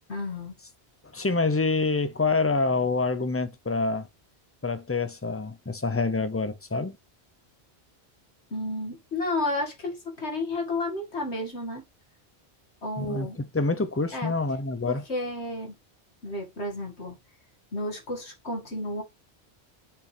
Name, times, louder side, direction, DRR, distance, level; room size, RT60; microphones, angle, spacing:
voice 1, 0.1-0.5 8.5-11.8 12.8-13.4 14.1-14.3 14.9-15.8 16.2-17.2 17.7-19.0, left 2 dB, 75° left, 2.5 m, -32 dB
voice 2, 1.1-4.1 4.6-7.0 13.0-15.0, left 3 dB, 15° left, 0.5 m, -26 dB
6.7 x 6.1 x 3.4 m
omnidirectional pair, 1.1 m